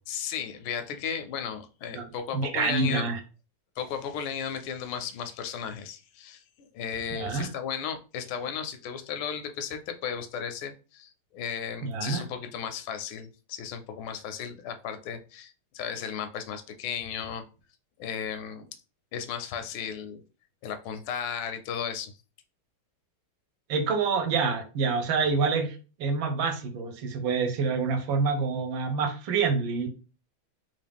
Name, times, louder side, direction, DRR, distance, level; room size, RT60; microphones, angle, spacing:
voice 1, 0.1-3.1 3.8-6.4 6.7-17.4 18.0-18.7 19.1-20.2 20.6-22.1, left 7 dB, 85° left, 8 dB, 1.4 m, -35 dB
voice 2, 2.3-3.2 7.1-7.5 11.8-12.2 23.7-29.9, right 4 dB, 75° right, 5 dB, 1.4 m, -27 dB
3.5 x 2.6 x 3.4 m, 0.34 s
omnidirectional pair, 2.2 m